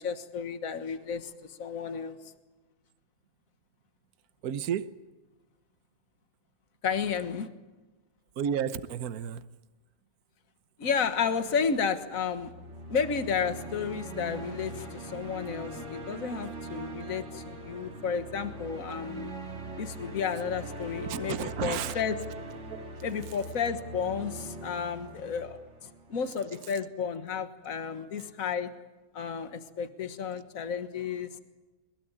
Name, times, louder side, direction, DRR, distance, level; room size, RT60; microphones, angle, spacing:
voice 1, 0.0-2.2 6.8-7.5 10.8-12.5 12.9-19.3 19.8-22.2 23.0-28.7 29.1-31.4, left 6 dB, 55° left, 9 dB, 1.8 m, -32 dB
voice 2, 4.4-4.9 8.4-9.4 18.9-19.0 21.0-22.0 22.7-22.8, right 8 dB, 65° right, 13 dB, 1.4 m, -32 dB
sound 1, 12.3-26.5, right 2 dB, 45° right, 2.3 m, -41 dB
23.0 x 21.5 x 8.9 m, 1.2 s
omnidirectional pair, 1.8 m